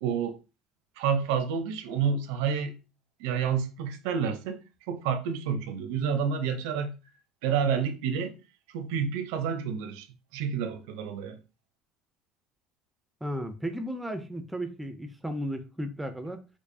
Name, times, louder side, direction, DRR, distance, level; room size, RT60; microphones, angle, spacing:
voice 1, 0.0-0.4 1.0-2.8 3.2-4.6 4.9-6.9 7.4-8.4 8.7-10.1 10.3-11.4, right 7 dB, 80° right, 0.6 m, -29 dB
voice 2, 13.2-16.5, equal, 5° right, 0.3 m, -34 dB
4.5 x 2.4 x 2.6 m
cardioid pair, 170°, 0 cm